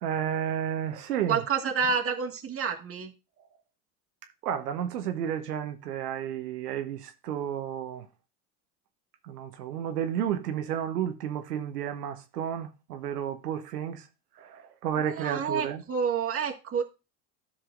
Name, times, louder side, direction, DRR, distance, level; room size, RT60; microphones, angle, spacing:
voice 1, 0.0-1.4 4.4-8.1 9.2-14.1 14.4-15.8, right 9 dB, 85° right, 0.9 m, -32 dB
voice 2, 1.2-3.1 15.0-16.8, right 6 dB, 30° right, 1.7 m, -29 dB
13.0 x 5.6 x 2.5 m
hypercardioid pair, 80°, 47 cm